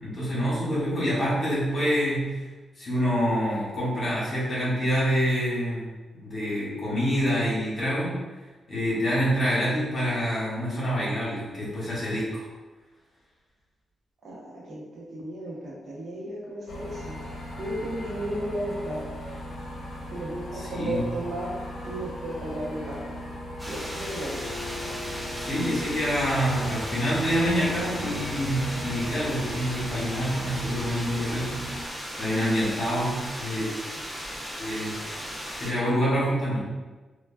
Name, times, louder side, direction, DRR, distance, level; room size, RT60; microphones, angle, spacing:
voice 1, 0.0-2.4 2.8-5.9 6.2-8.2 8.7-12.5 20.5-21.0 25.3-31.6 32.2-33.7 34.6-34.9 35.5-36.6, equal, 40° left, -8 dB, 1.4 m, -26 dB
voice 2, 14.2-17.2 17.6-19.0 20.1-21.6 21.9-23.2 23.7-24.4, right 1 dB, 55° right, -4 dB, 0.7 m, -34 dB
sound 1, 16.7-31.8, left 1 dB, 75° left, 0.7 m, -38 dB
sound 2, 22.4-30.6, left 1 dB, 80° right, 0.9 m, -42 dB
sound 3, 23.6-35.7, equal, 5° right, 0.5 m, -37 dB
3.3 x 2.3 x 2.2 m, 1.2 s
cardioid pair, 110°, 0 cm